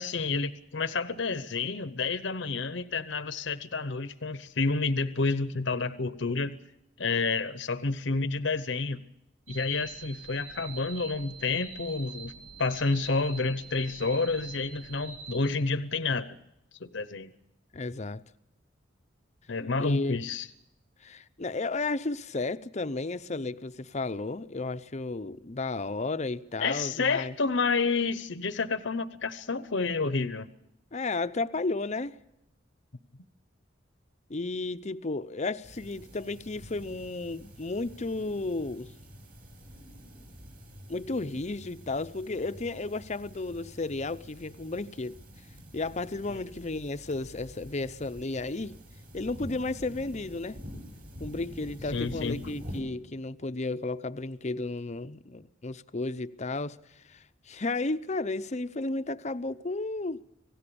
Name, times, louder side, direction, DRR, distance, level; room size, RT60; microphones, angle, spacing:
voice 1, 0.0-6.6 7.0-9.0 9.5-12.3 12.6-16.3 16.8-17.3 19.5-20.5 26.6-30.5 46.3-46.4 51.9-52.4, left 4 dB, 65° left, 0.9 m, -29 dB
sound 1, 9.5-15.4, right 5 dB, 80° right, 7.5 m, -45 dB
voice 2, 17.7-18.2 19.8-20.2 21.0-27.3 30.9-32.2 34.3-38.9 40.9-45.2 45.7-48.8 49.1-50.6 51.2-56.8 57.0-60.2, left 3 dB, 35° left, 0.7 m, -33 dB
sound 2, 35.6-52.8, equal, 50° right, 6.3 m, -47 dB
26.5 x 17.5 x 7.0 m
head